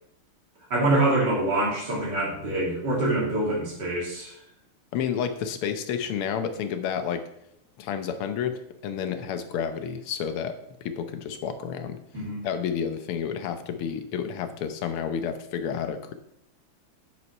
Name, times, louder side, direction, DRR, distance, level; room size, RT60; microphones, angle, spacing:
voice 1, 0.7-4.3 12.1-12.4, right 2 dB, 50° right, -4 dB, 3.6 m, -25 dB
voice 2, 4.9-7.2 7.8-12.0 12.4-16.1, left 7 dB, 85° left, 9 dB, 1.8 m, -30 dB
9.0 x 6.3 x 5.4 m, 0.77 s
omnidirectional pair, 2.4 m